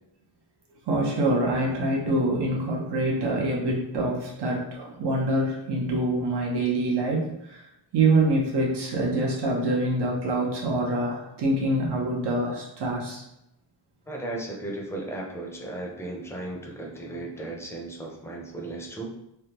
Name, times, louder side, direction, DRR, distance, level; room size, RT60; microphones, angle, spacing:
voice 1, 0.9-7.6 7.9-13.2, right 2 dB, 70° right, -2 dB, 0.9 m, -25 dB
voice 2, 14.1-19.1, right 2 dB, 5° left, -1 dB, 0.6 m, -35 dB
3.3 x 2.2 x 2.9 m, 0.83 s
wide cardioid pair, 105°, 43 cm